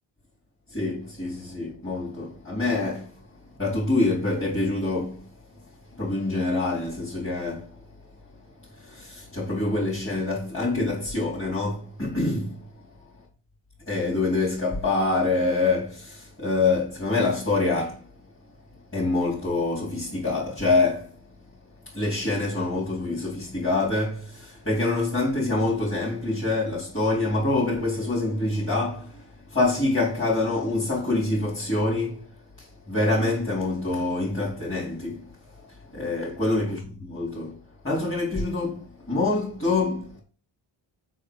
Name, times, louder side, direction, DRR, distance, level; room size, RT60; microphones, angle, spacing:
voice 1, 0.7-3.1 3.6-5.2 6.0-7.7 8.7-12.6 13.9-18.0 18.9-21.1 21.9-29.2 29.5-32.2 32.6-35.3 35.9-37.6 37.8-40.2, left 2 dB, 25° left, 4.3 m, -26 dB
6.3 x 6.1 x 4.9 m
cardioid pair, 70°, 49 cm